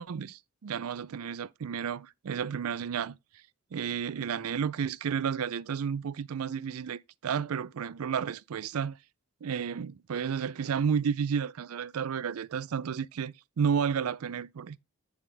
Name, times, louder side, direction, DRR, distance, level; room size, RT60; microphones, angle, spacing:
voice 1, 0.0-3.2 3.7-9.0 9.4-14.8, right 7 dB, 85° right, 0.4 m, -32 dB
8.6 x 7.1 x 3.4 m
head